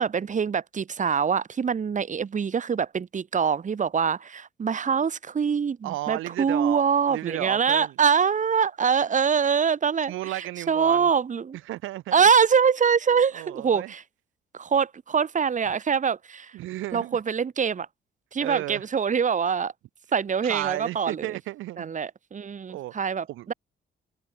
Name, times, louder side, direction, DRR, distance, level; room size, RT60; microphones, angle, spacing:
voice 1, 0.0-10.1 10.7-11.6 12.1-14.0 14.5-16.5 16.9-17.9 18.3-19.7 20.1-21.3 21.8-23.5, right 6 dB, 40° right, 1.7 m, -24 dB
voice 2, 5.8-6.8 7.1-8.0 10.1-11.1 11.6-12.2 13.3-13.9 16.5-17.2 18.4-18.9 20.4-21.9 22.7-22.9 23.3-23.5, right 16 dB, 90° right, 1.5 m, -33 dB
cardioid pair, 90°, 20 cm